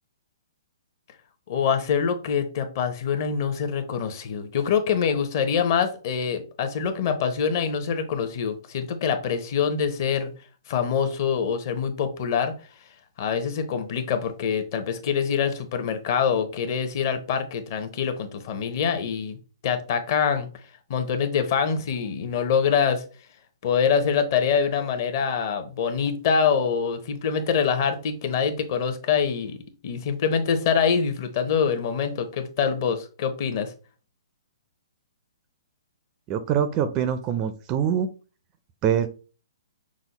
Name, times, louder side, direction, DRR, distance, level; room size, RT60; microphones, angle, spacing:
voice 1, 1.5-10.3 10.7-12.5 13.2-19.4 19.6-20.5 20.9-23.0 23.6-29.6 29.8-33.7, left 6 dB, 40° left, 7 dB, 0.8 m, -25 dB
voice 2, 36.3-38.1 38.8-39.1, right 9 dB, 20° right, 10 dB, 0.4 m, -24 dB
6.1 x 2.1 x 4.0 m, 0.36 s
hypercardioid pair, 165°, 3 cm